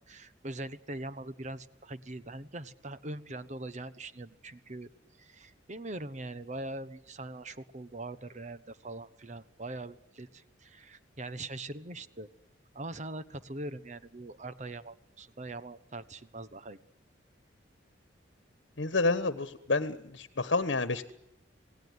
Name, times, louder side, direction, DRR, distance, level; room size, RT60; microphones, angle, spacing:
voice 1, 0.1-4.9 5.2-12.3 12.7-16.8, right 2 dB, 40° right, 13 dB, 1.1 m, -42 dB
voice 2, 18.8-21.1, left 3 dB, 70° left, 12 dB, 1.3 m, -29 dB
27.0 x 18.5 x 9.7 m, 0.85 s
head